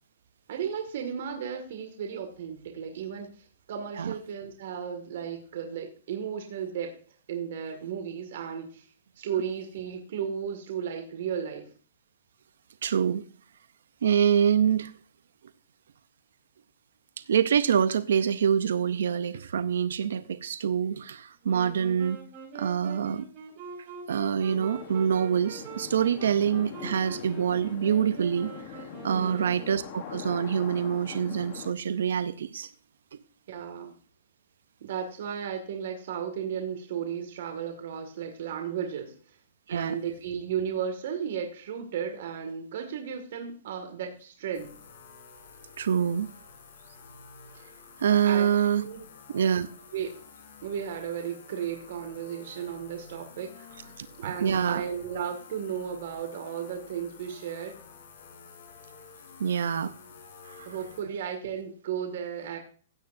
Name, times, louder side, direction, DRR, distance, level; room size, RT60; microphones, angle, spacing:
voice 1, 0.5-7.0 7.3-8.9 9.2-11.7 29.1-29.5 33.5-34.0 34.8-39.4 39.7-44.7 48.2-48.5 48.8-49.0 49.9-50.1 50.6-57.8 60.7-62.6, right 8 dB, 60° right, 2.0 m, -34 dB
voice 2, 12.8-13.2 14.0-14.9 17.3-22.2 22.5-23.3 24.1-28.8 29.0-32.7 39.7-40.0 45.8-46.3 48.0-48.9 49.3-49.7 54.0-54.1 54.4-54.8 59.4-59.9 60.4-60.7, right 8 dB, 80° right, 0.6 m, -26 dB
Wind instrument woodwind instrument, 21.4-30.2, right 5 dB, 40° right, 6.6 m, -44 dB
sound 1, 24.5-31.7, left 11 dB, 40° left, 1.1 m, -43 dB
sound 2, 44.5-61.0, left 6 dB, 65° left, 3.6 m, -50 dB
16.0 x 8.8 x 2.6 m
hypercardioid pair, 150°, 0 cm